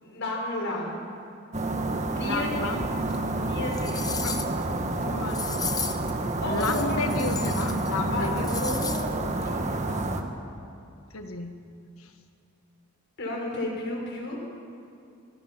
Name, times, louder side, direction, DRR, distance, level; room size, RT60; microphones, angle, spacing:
voice 1, 0.0-1.0 2.1-2.5 3.3-4.1 6.4-7.1 8.1-10.0 13.2-14.4, left 1 dB, 60° left, -1 dB, 5.3 m, -33 dB
sound 1, 1.5-10.2, right 2 dB, 35° right, 1.5 m, -29 dB
voice 2, 2.2-2.9 4.2-4.4 5.0-5.4 6.4-8.5 11.1-11.5 12.0-12.1, left 3 dB, 75° left, 6 dB, 1.6 m, -31 dB
sound 2, 3.1-3.2 3.6-4.6 5.3-6.1 6.5-7.9 8.2-9.1 9.4-9.5, left 5 dB, 20° left, 1.1 m, -35 dB
25.0 x 20.0 x 6.1 m, 2.5 s
head